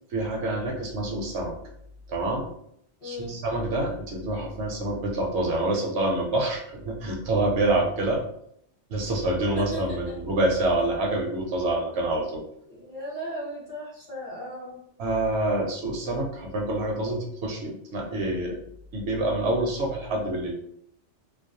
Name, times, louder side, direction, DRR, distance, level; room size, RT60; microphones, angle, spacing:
voice 1, 0.1-1.5 2.1-2.5 3.0-8.2 8.9-12.4 15.0-18.6 18.9-20.7, right 2 dB, 70° right, 0 dB, 0.8 m, -27 dB
voice 2, 3.0-3.4 9.5-10.2 12.7-14.8, equal, 35° left, -7 dB, 0.7 m, -36 dB
2.4 x 2.0 x 2.6 m, 0.72 s
omnidirectional pair, 1.2 m